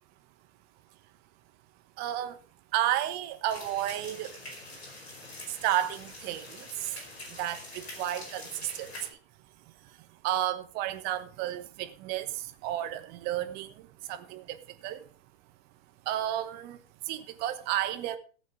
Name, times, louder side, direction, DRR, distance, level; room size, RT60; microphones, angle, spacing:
voice 1, 2.0-2.4 2.7-4.4 5.5-7.0 7.3-9.2 9.8-15.0 16.0-18.2, right 13 dB, 30° right, 11 dB, 1.1 m, -32 dB
sound 1, 3.5-9.1, left 2 dB, 80° left, 4.3 m, -45 dB
14.0 x 8.7 x 4.7 m, 0.38 s
figure-of-eight pair, 110°, 31 cm